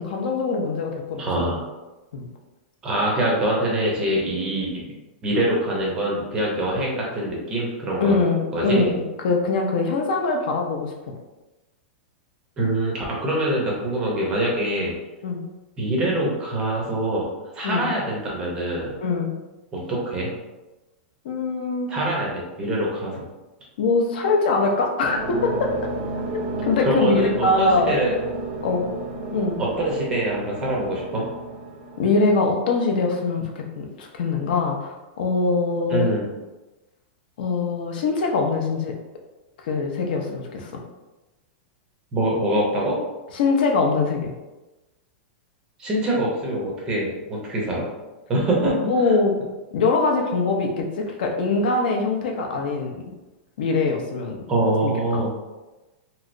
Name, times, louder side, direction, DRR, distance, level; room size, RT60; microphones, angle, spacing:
voice 1, 0.0-1.3 2.1-2.3 8.0-11.1 15.2-15.4 17.6-17.9 19.0-19.3 21.2-21.9 23.8-25.7 26.3-27.9 28.6-28.9 29.3-29.6 32.0-36.1 37.4-38.9 39.6-40.7 43.3-44.3 48.8-49.3 49.7-53.1 53.6-54.4 54.8-55.2, left 3 dB, 55° left, 2 dB, 0.6 m, -23 dB
voice 2, 1.2-1.6 2.8-4.8 5.2-8.2 8.5-8.9 12.6-14.9 15.8-17.3 17.5-18.9 19.7-20.3 21.9-23.2 26.9-28.2 29.6-31.3 35.9-36.2 42.1-43.0 45.8-47.9 48.3-48.9 54.5-55.3, right 1 dB, 15° right, -3 dB, 0.5 m, -24 dB
sound 1, 25.1-32.5, right 3 dB, 85° right, 0.7 m, -32 dB
3.1 x 2.8 x 2.5 m, 1.1 s
supercardioid pair, 180°, 6 cm